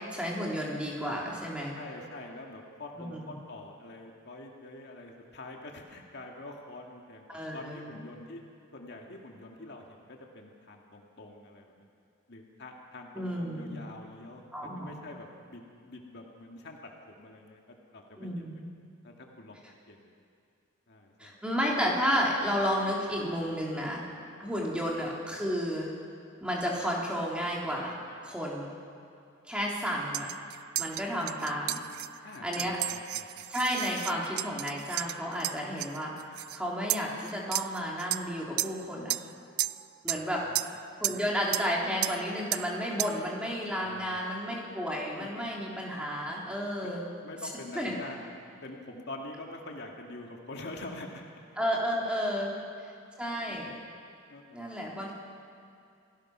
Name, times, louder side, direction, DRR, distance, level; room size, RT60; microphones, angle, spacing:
voice 1, 0.1-1.8 3.0-3.2 7.3-8.0 13.2-13.8 14.5-15.0 18.2-18.6 21.2-24.0 24.4-25.9 26.4-28.7 29.5-30.3 30.8-31.8 32.4-32.8 33.5-36.1 36.5-39.1 40.0-40.5 41.0-47.1 47.7-47.9 51.6-52.9 53.2-53.7 54.5-55.1, equal, 5° right, -3 dB, 3.4 m, -32 dB
voice 2, 1.8-8.4 8.7-11.9 12.3-17.6 17.9-18.3 19.0-20.1 20.9-21.3 24.4-24.5 32.2-33.3 40.1-40.6 41.1-41.2 43.8-44.2 45.2-45.3 46.8-46.9 47.2-48.3 48.6-51.2 52.5-52.7 53.4-53.6 54.3-54.6, left 2 dB, 55° left, 1 dB, 2.0 m, -45 dB
sound 1, 30.1-36.6 36.9-38.3 38.6-38.8 39.1-39.3 39.6-40.2 40.5-40.8 41.0-41.3 41.5-41.7 42.0-42.2 42.5-42.7 43.0-43.2, right 17 dB, 80° right, 0.4 m, -33 dB
27.0 x 17.5 x 6.1 m, 2.5 s
head